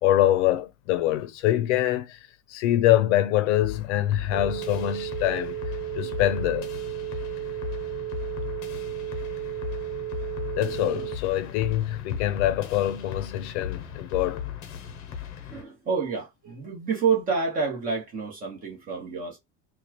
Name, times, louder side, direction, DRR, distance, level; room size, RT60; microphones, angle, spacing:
voice 1, 0.0-5.6 6.0-6.7 10.6-14.4, left 13 dB, 80° left, 0.7 m, -24 dB
sound 1, 3.6-15.6, left 9 dB, 40° left, 0.8 m, -37 dB
sound 2, 4.3-11.2, right 15 dB, 55° right, 0.7 m, -34 dB
voice 2, 15.5-19.4, right 5 dB, 25° right, 1.3 m, -28 dB
4.2 x 2.4 x 3.0 m
cardioid pair, 170°, 34 cm